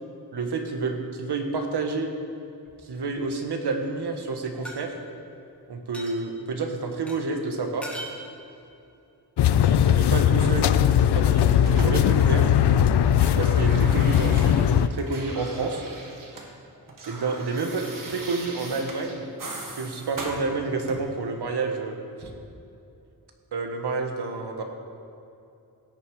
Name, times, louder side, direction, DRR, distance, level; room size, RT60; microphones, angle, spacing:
voice 1, 0.3-2.1 2.8-4.9 5.7-7.9 9.7-10.7 11.1-12.4 13.4-15.8 17.1-19.3 19.7-22.3 23.5-24.6, right 3 dB, 75° right, 4 dB, 1.5 m, -29 dB
sound 1, 2.7-3.3 4.7-4.8 5.9-6.2 7.1-7.2 7.8-8.2, right 1 dB, 5° left, 1.6 m, -38 dB
sound 2, 9.4-14.9, left 9 dB, 75° left, 0.5 m, -19 dB
sound 3, 11.0-12.7 13.0-16.5 16.8-21.2 22.2-22.4, right 2 dB, 50° right, 1.9 m, -40 dB
17.0 x 9.3 x 4.9 m, 2.7 s
wide cardioid pair, 155°, 40 cm